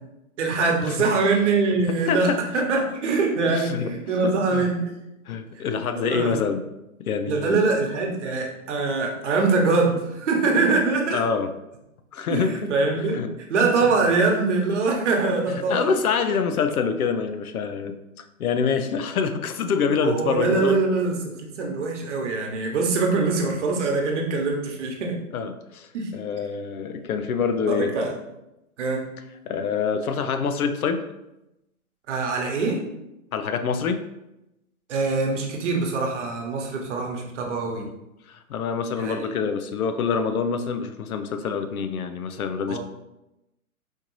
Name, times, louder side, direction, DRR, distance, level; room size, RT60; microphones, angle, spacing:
voice 1, 0.4-4.9 5.6-5.7 5.9-6.3 7.3-11.2 12.3-13.2 13.5-15.9 20.0-25.2 25.9-26.1 27.7-28.1 28.8-29.0 32.1-32.8 34.9-37.8 39.0-39.3 42.7-42.8, right 3 dB, 55° right, 1 dB, 1.0 m, -23 dB
voice 2, 2.1-2.4 3.5-3.9 4.2-4.7 5.3-6.6 7.0-7.6 11.1-11.5 12.1-12.7 13.1-13.3 15.5-17.9 18.4-20.8 25.3-27.9 29.5-31.1 33.3-34.0 37.8-37.9 38.3-42.8, left 6 dB, 75° left, 8 dB, 0.6 m, -26 dB
4.4 x 2.5 x 3.0 m, 0.90 s
hypercardioid pair, 140°, 43 cm